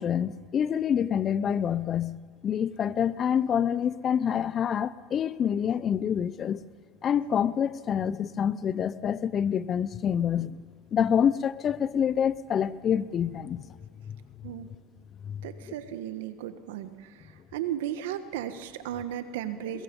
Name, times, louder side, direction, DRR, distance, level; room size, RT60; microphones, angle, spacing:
voice 1, 0.0-6.6 7.0-10.6 10.9-13.8 14.1-14.2 15.2-15.4 19.7-19.8, left 8 dB, 35° left, 0.7 m, -27 dB
voice 2, 15.4-17.1 17.5-19.8, right 11 dB, 85° right, 1.4 m, -35 dB
23.0 x 21.5 x 5.5 m
supercardioid pair, 105°, 0 cm